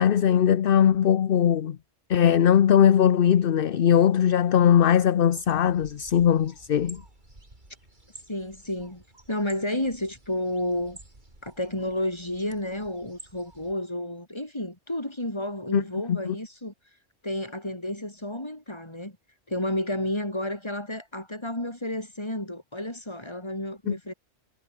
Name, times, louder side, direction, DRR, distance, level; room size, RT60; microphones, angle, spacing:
voice 1, 0.0-1.8 2.1-7.0 15.7-15.8 16.1-16.2 23.9-24.0, left 9 dB, 55° left, 0.9 m, -20 dB
sound 1, 5.2-13.7, right 2 dB, 40° right, 4.6 m, -51 dB
voice 2, 8.3-11.0 11.4-16.7 17.2-19.2 19.5-24.1, left 1 dB, 25° left, 4.4 m, -31 dB
omnidirectional pair, 1.2 m